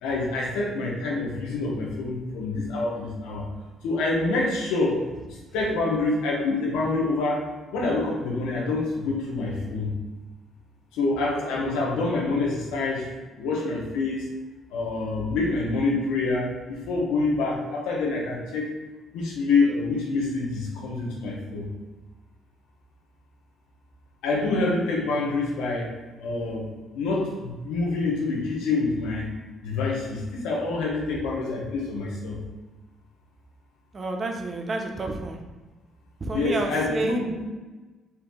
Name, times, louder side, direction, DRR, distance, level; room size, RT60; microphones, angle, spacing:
voice 1, 0.0-3.5 3.8-5.1 5.5-9.9 10.9-13.1 13.4-14.3 14.7-18.7 19.1-21.7 24.2-25.9 26.2-26.7 26.9-29.3 29.6-32.4 36.3-37.4, left 3 dB, 90° left, -2 dB, 1.1 m, -26 dB
voice 2, 33.9-35.4 36.2-37.2, right 2 dB, 35° right, 3 dB, 0.7 m, -29 dB
4.5 x 2.8 x 3.8 m, 1.2 s
cardioid pair, 85°, 0 cm